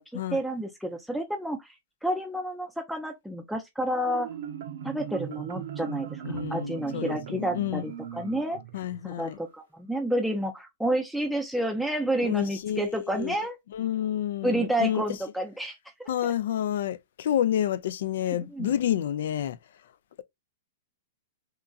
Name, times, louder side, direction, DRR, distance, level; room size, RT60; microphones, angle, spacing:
voice 1, 0.0-1.7 2.0-4.3 4.8-8.6 9.0-13.6 14.4-15.8 16.2-16.3 18.5-18.7, right 1 dB, ahead, 0.5 m, -30 dB
Marimba xylophone, 3.9-9.5, right 9 dB, 65° right, 0.6 m, -38 dB
voice 2, 6.2-7.9 8.7-9.4 12.2-13.4 13.7-15.0 16.1-19.6, left 10 dB, 70° left, 0.3 m, -29 dB
2.9 x 2.4 x 2.3 m
hypercardioid pair, 120°, 0 cm